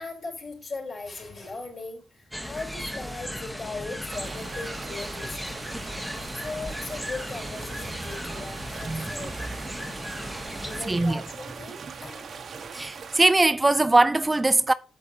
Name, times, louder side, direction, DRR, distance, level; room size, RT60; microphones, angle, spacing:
voice 1, 0.0-5.7 6.3-9.6 10.6-12.4, left 3 dB, 45° left, 4.1 m, -39 dB
sound 1, 2.3-10.9, equal, 5° left, 1.3 m, -36 dB
sound 2, 4.1-13.3, right 6 dB, 60° right, 1.3 m, -41 dB
voice 2, 10.9-11.2 12.7-14.7, right 2 dB, 20° right, 0.3 m, -21 dB
8.5 x 7.3 x 2.9 m
cardioid pair, 65°, 0 cm